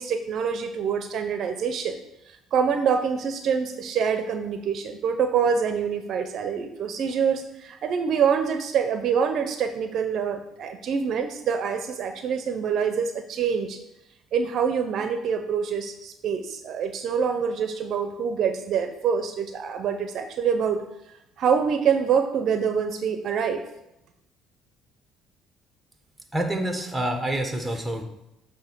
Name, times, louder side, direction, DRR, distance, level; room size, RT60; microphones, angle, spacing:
voice 1, 0.0-2.0 2.5-13.8 14.3-20.8 21.4-23.6, right 6 dB, 60° right, 7 dB, 0.6 m, -25 dB
voice 2, 26.3-28.0, right 1 dB, 5° right, 4 dB, 1.2 m, -27 dB
8.1 x 2.8 x 6.1 m, 0.87 s
cardioid pair, 95°, 0 cm